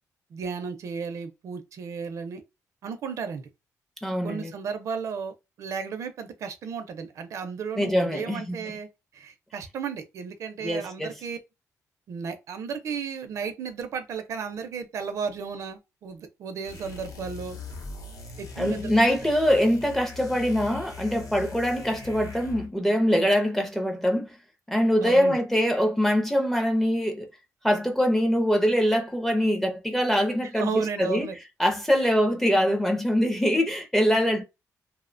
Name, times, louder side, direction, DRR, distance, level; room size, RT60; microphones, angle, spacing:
voice 1, 0.3-2.4 2.8-3.5 4.2-8.9 9.1-11.4 12.1-17.6 18.4-18.9 25.0-25.4 30.5-31.4 31.9-32.0 34.1-34.2, right 6 dB, 60° right, 0.4 m, -34 dB
voice 2, 4.0-4.5 7.8-8.6 10.6-11.1 18.6-24.3 24.7-27.3 27.6-31.3 31.6-34.4, equal, 5° left, 0.4 m, -23 dB
sound 1, 16.6-22.8, left 5 dB, 80° left, 0.6 m, -41 dB
2.7 x 2.0 x 2.4 m
wide cardioid pair, 170°, 6 cm